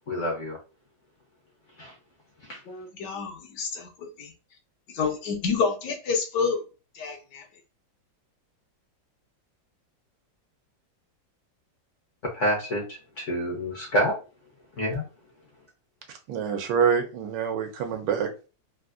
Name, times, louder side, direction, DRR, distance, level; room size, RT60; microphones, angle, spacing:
voice 1, 0.1-0.6 1.8-1.9 2.4-2.6 12.2-14.2 14.8-15.1, equal, 55° left, 0 dB, 0.9 m, -28 dB
voice 2, 2.7-3.9 4.2-4.3 4.9-6.6 6.9-7.5, left 5 dB, 70° left, 3 dB, 1.3 m, -28 dB
voice 3, 16.3-18.5, right 7 dB, 75° right, 5 dB, 1.3 m, -26 dB
3.6 x 2.5 x 2.4 m, 0.33 s
omnidirectional pair, 2.0 m